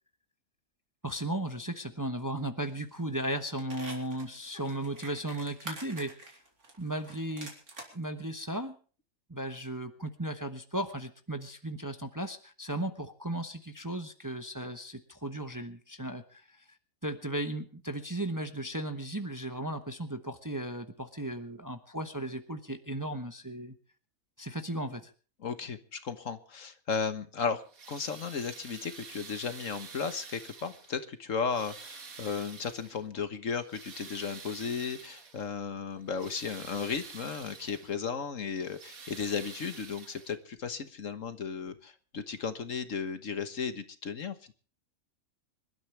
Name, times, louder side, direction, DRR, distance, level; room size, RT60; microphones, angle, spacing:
voice 1, 1.0-6.1 6.8-7.5 7.9-8.8 9.3-16.6 17.0-23.8 24.4-25.1, right 1 dB, 15° right, 8 dB, 1.1 m, -36 dB
sound 1, 2.7-2.9 3.2-7.9 8.4-8.5, right 2 dB, 85° right, 4.4 m, -46 dB
voice 2, 25.4-27.6 27.9-44.5, left 5 dB, 60° left, 10 dB, 1.6 m, -35 dB
sound 2, 27.6-31.0 31.4-33.1 33.5-35.5 35.9-38.0 38.5-40.6 41.7-41.8 42.4-42.5, right 5 dB, 70° right, 2.1 m, -48 dB
26.0 x 12.5 x 3.3 m, 0.39 s
omnidirectional pair, 1.5 m